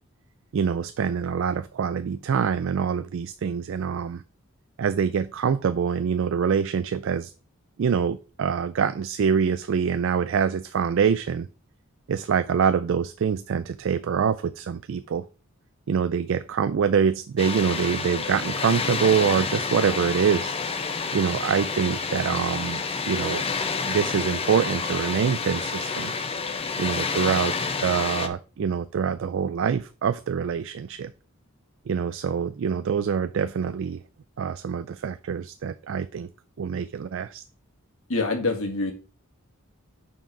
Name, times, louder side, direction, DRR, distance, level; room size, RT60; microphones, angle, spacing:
voice 1, 0.5-4.2 4.8-7.3 7.8-11.5 12.1-15.3 15.9-20.6 21.1-23.4 23.9-26.1 26.8-31.1 31.9-34.0 34.4-36.3 36.6-37.4, right 7 dB, 65° right, 0.4 m, -25 dB
Water, 17.4-28.3, left 4 dB, 25° left, 0.7 m, -29 dB
voice 2, 38.1-38.9, left 3 dB, 70° left, 1.8 m, -25 dB
5.9 x 4.6 x 5.3 m
head